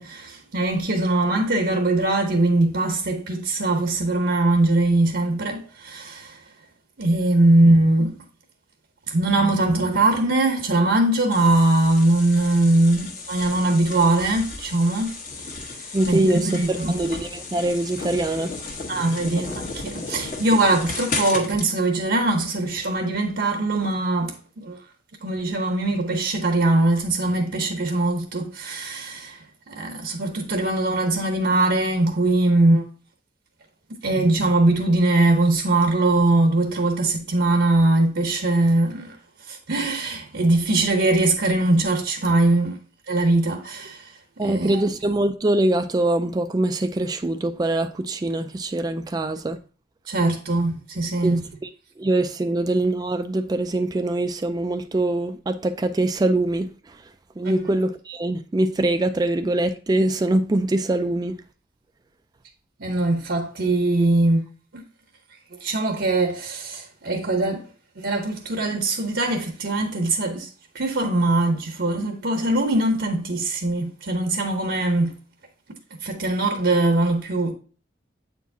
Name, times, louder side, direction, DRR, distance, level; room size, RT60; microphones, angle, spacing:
voice 1, 0.0-6.4 7.0-8.2 9.1-15.2 15.5-17.1 18.9-24.8 25.2-29.4 29.7-32.8 34.0-39.2 39.5-42.8 43.1-44.1 44.4-44.8 50.1-51.5 57.4-57.6 62.8-64.4 64.7-64.8 65.6-67.6 68.0-70.5 70.7-75.2 76.0-77.5, right 2 dB, 65° right, 0.8 m, -21 dB
sound 1, 11.3-21.7, left 3 dB, 45° left, 1.3 m, -34 dB
voice 2, 15.9-18.6 44.4-49.6 51.2-51.4 52.0-57.0 57.4-61.4, right 2 dB, 20° right, 0.3 m, -23 dB
8.2 x 4.6 x 2.6 m
head